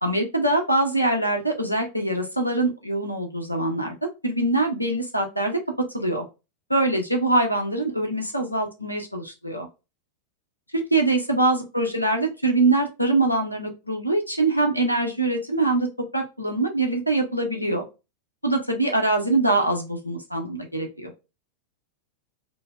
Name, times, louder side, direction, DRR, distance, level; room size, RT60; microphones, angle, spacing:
voice 1, 0.0-3.9 4.2-5.6 5.9-6.2 6.7-9.7 10.9-15.9 16.1-17.8 18.4-21.1, right 2 dB, 90° left, 3 dB, 0.7 m, -23 dB
3.9 x 2.0 x 2.2 m, 0.27 s
figure-of-eight pair, 90°, 0 cm